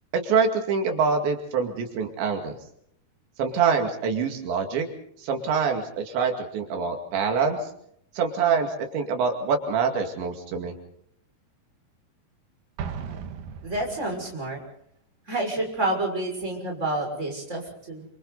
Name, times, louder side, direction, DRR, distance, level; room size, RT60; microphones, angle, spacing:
voice 1, 0.1-2.6 3.4-4.9 5.2-7.6 8.2-8.7 8.9-10.7, right 5 dB, 85° right, 4 dB, 4.6 m, -25 dB
Explosion, 12.8-14.4, right 6 dB, 60° right, 2.4 m, -36 dB
voice 2, 13.6-14.6 15.3-18.1, right 2 dB, 15° right, 1 dB, 6.4 m, -29 dB
29.0 x 25.5 x 4.1 m, 0.69 s
omnidirectional pair, 5.0 m